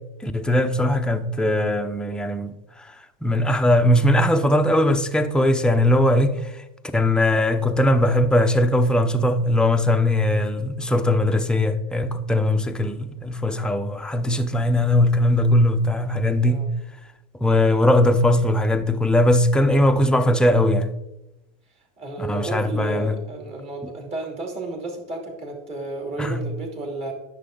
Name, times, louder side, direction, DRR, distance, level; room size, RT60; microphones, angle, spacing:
voice 1, 0.2-2.5 3.2-6.4 6.9-16.7 17.4-20.9 22.2-23.1 26.2-26.4, left 1 dB, 5° left, 0.6 m, -20 dB
voice 2, 22.0-27.1, right 2 dB, 35° right, 2.7 m, -32 dB
10.5 x 6.8 x 3.8 m
supercardioid pair, 115°, 18 cm